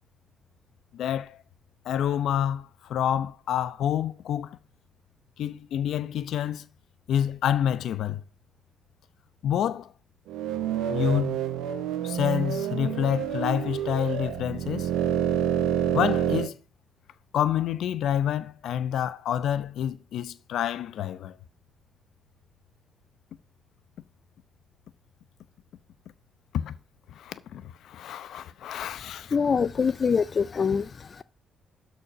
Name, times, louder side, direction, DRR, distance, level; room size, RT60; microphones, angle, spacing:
voice 1, 0.9-1.4 1.8-4.6 5.4-6.7 7.1-8.2 9.4-9.9 10.9-11.4 12.0-14.9 15.9-16.6 17.3-21.4 26.5-26.7 27.1-29.4, left 10 dB, 75° left, 0.8 m, -28 dB
sound 1, 10.3-16.5, right 10 dB, 85° right, 0.7 m, -28 dB
voice 2, 29.3-31.2, left 6 dB, 40° left, 0.4 m, -25 dB
12.5 x 4.5 x 5.8 m
cardioid pair, 90°, 0 cm